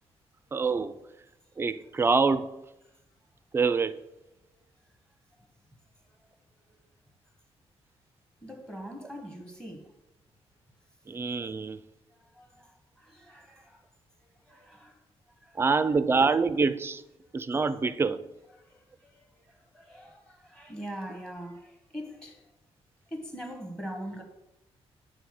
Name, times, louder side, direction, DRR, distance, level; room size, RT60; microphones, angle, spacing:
voice 1, 0.5-1.0 1.6-2.6 3.5-4.0 11.1-11.8 15.5-17.0 17.3-18.2, right 4 dB, 20° right, 0.4 m, -26 dB
voice 2, 6.0-6.4 6.6-6.8 8.4-10.0 12.1-13.9 14.2-15.6 18.5-22.5 23.1-24.2, equal, 5° left, 1.1 m, -43 dB
9.1 x 3.7 x 6.4 m
wide cardioid pair, 160°, 11 cm